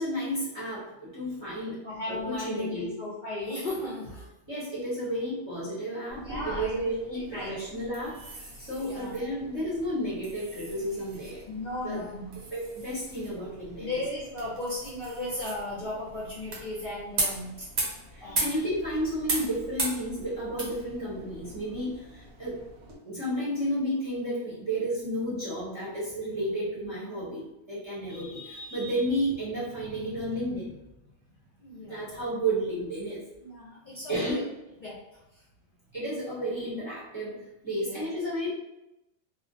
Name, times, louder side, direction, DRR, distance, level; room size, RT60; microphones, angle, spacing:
voice 1, 0.0-1.8 2.1-2.9 4.5-11.4 11.8-12.0 12.5-14.0 18.1-22.6 23.0-30.7 31.8-33.2 34.1-34.4 35.9-37.4 37.6-38.5, equal, 30° right, -10 dB, 0.7 m, -32 dB
voice 2, 1.8-4.3 6.2-7.7 8.8-9.1 11.5-12.4 13.8-17.7 18.2-18.5 31.6-32.0 33.4-34.4 34.8-35.0 35.3-35.4 37.7-38.1, left 2 dB, 50° left, -7 dB, 0.6 m, -36 dB
sound 1, 6.1-23.0, right 2 dB, 70° right, 1.0 m, -38 dB
2.4 x 2.0 x 2.6 m, 0.90 s
omnidirectional pair, 1.3 m